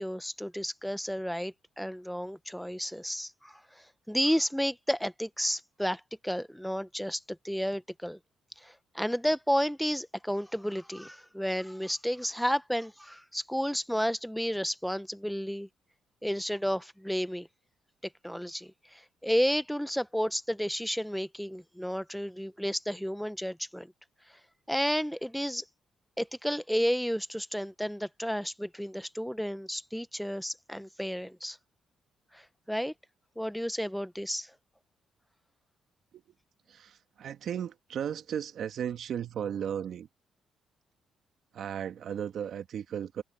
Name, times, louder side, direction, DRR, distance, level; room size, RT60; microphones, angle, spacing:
voice 1, 0.0-8.2 8.6-15.7 16.2-17.5 18.2-23.9 24.7-25.6 26.2-31.6 32.3-32.9 33.4-34.5, equal, ahead, 1.0 m, -32 dB
voice 2, 36.7-40.1 41.5-43.2, right 9 dB, 65° right, 1.6 m, -35 dB
cardioid pair, 90°, 0 cm